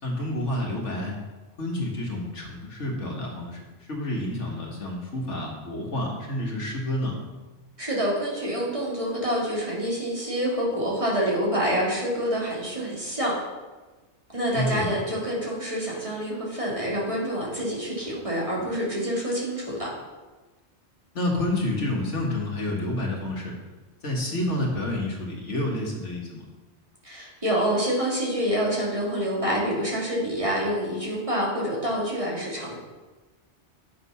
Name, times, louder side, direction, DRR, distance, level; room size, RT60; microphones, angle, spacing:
voice 1, 0.0-1.1 1.6-7.2 14.5-14.9 21.1-23.5 24.0-26.4, left 1 dB, 80° left, -1 dB, 2.2 m, -29 dB
voice 2, 7.8-13.3 14.3-19.9 27.0-32.8, equal, 30° right, -5 dB, 2.9 m, -27 dB
9.4 x 6.7 x 5.8 m, 1.2 s
omnidirectional pair, 1.2 m